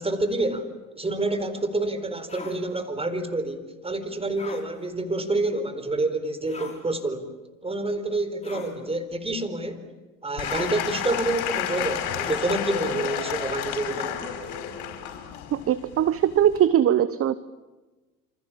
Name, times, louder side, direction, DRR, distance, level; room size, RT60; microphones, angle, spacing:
voice 1, 0.0-7.3 7.6-9.9 10.2-14.2, right 2 dB, 15° right, 10 dB, 4.3 m, -28 dB
sound 1, 2.3-2.6 4.4-4.6 6.5-6.8 8.4-8.8 10.4-10.7 12.2-12.5, left 4 dB, 15° left, 6.3 m, -38 dB
Applause / Crowd, 10.4-16.7, left 9 dB, 65° left, 5.6 m, -31 dB
voice 2, 15.5-17.3, right 10 dB, 35° right, 16 dB, 1.0 m, -21 dB
28.0 x 27.0 x 7.4 m, 1.2 s
hypercardioid pair, 75°, 41 cm